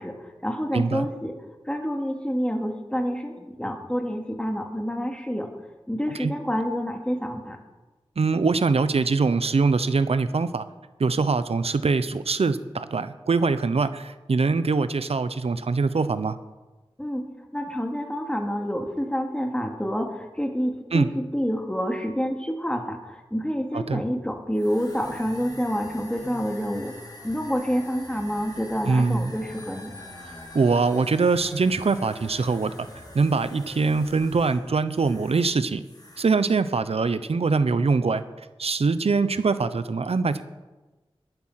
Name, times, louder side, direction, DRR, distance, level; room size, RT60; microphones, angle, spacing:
voice 1, 0.0-1.3 1.7-5.5 5.9-7.6 17.0-26.9 27.2-29.9, equal, 10° left, 3 dB, 2.5 m, -28 dB
voice 2, 0.7-1.1 6.2-6.3 8.2-10.6 11.0-16.4 20.9-21.1 23.7-24.0 28.9-29.3 30.5-32.7 33.1-35.8 36.2-38.2 38.6-40.4, right 4 dB, 85° right, 13 dB, 0.8 m, -23 dB
sound 1, 24.5-35.5 35.8-36.3, left 1 dB, 40° left, 3.5 m, -44 dB
19.0 x 10.5 x 5.8 m, 1.2 s
wide cardioid pair, 55°, 10 cm